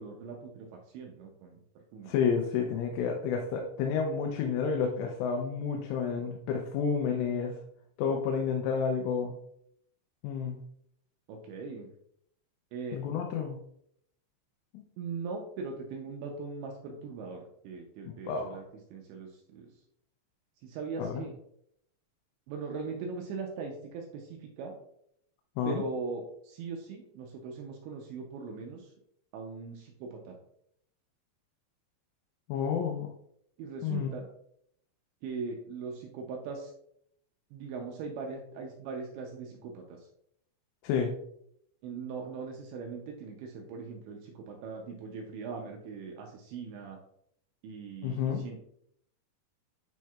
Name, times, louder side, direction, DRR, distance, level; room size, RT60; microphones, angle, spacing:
voice 1, 0.0-1.6 1.9-2.1 11.3-11.9 12.7-13.0 15.0-18.6 18.9-19.7 20.6-21.3 22.5-24.7 25.6-28.9 29.3-30.4 33.6-34.3 35.2-36.7 37.5-40.1 41.8-47.0 47.6-48.6, right 4 dB, 80° right, 1 dB, 2.7 m, -40 dB
voice 2, 2.0-7.6 8.0-9.3 10.2-10.6 12.9-13.6 14.7-14.8 18.1-18.5 21.0-21.2 25.6-25.8 32.5-33.1 33.8-34.1 40.8-41.1 48.0-48.5, left 6 dB, 85° left, 2 dB, 3.2 m, -30 dB
9.1 x 4.5 x 2.3 m, 0.71 s
omnidirectional pair, 5.7 m